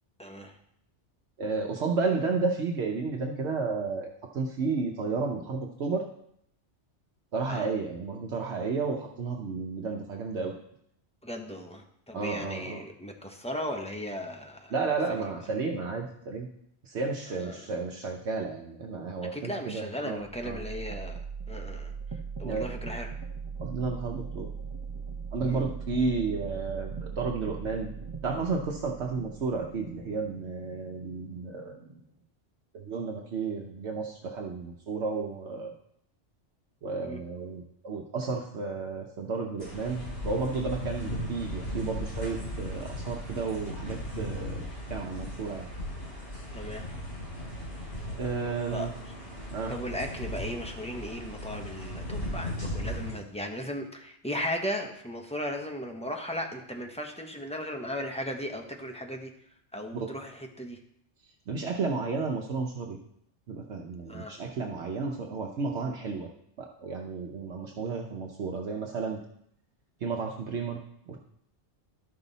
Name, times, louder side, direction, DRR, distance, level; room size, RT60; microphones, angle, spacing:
voice 1, 0.2-0.6 7.5-7.7 11.2-14.7 15.1-15.3 17.4-17.8 19.3-23.1 25.4-25.6 37.0-37.2 46.5-46.9 48.7-48.9 49.7-59.3 59.7-60.8 64.1-64.4, equal, 5° left, 2 dB, 0.8 m, -36 dB
voice 2, 1.4-4.1 4.3-6.0 7.3-10.5 12.1-12.8 14.7-16.5 16.8-20.6 22.4-22.7 23.6-24.5 25.3-27.9 28.2-32.0 32.7-35.7 36.8-45.7 48.2-48.9 49.5-49.7 61.5-63.0 63.5-66.3 66.6-69.2 70.0-71.2, right 4 dB, 70° right, 1 dB, 1.1 m, -32 dB
sound 1, 20.2-32.1, right 5 dB, 25° right, 0.5 m, -40 dB
sound 2, 39.6-53.1, left 1 dB, 55° left, 4.3 m, -37 dB
12.0 x 5.8 x 4.0 m, 0.72 s
omnidirectional pair, 1.2 m